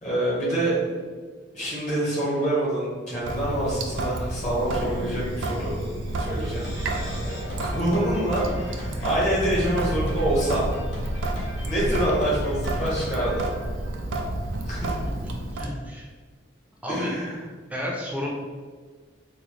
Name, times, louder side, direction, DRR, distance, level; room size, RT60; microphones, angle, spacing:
voice 1, 0.0-1.0 1.5-5.7 6.2-6.7 7.6-10.6 11.3-13.5 14.7-14.9 16.9-17.4, right 1 dB, 40° left, -6 dB, 1.2 m, -26 dB
Sink (filling or washing) / Drip, 3.2-15.7, right 1 dB, 75° right, 0.4 m, -30 dB
sound 1, 4.3-9.8, equal, 85° left, 1.2 m, -41 dB
Drum kit, 6.2-14.0, equal, 60° left, 0.9 m, -36 dB
voice 2, 14.6-15.1 15.5-16.1 16.8-17.2 17.7-18.3, left 1 dB, 5° right, -2 dB, 0.4 m, -32 dB
3.8 x 2.1 x 3.1 m, 1.5 s
head